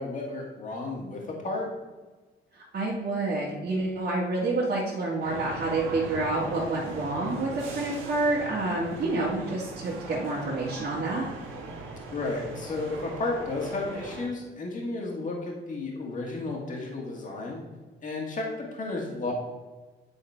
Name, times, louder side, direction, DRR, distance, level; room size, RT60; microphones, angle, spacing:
voice 1, 0.0-1.7 12.1-17.6 18.0-19.3, left 2 dB, 40° left, -1 dB, 1.7 m, -33 dB
voice 2, 2.5-11.3, right 2 dB, 50° right, -6 dB, 1.7 m, -28 dB
sound 1, 5.2-14.3, right 3 dB, 85° right, 1.4 m, -40 dB
9.6 x 4.2 x 4.4 m, 1.3 s
cardioid pair, 90°, 20 cm